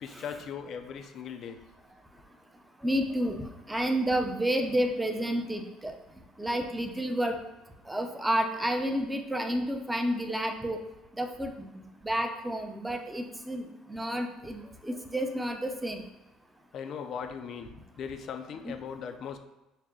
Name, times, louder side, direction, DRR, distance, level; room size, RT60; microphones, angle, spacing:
voice 1, 0.0-1.6 16.7-19.4, left 7 dB, 60° left, 7 dB, 0.5 m, -39 dB
voice 2, 2.8-5.9 6.4-7.4 7.9-10.8 11.1-16.0 18.6-18.7, equal, 10° right, 4 dB, 0.7 m, -30 dB
5.6 x 2.2 x 3.7 m, 0.99 s
supercardioid pair, 80°, 0 cm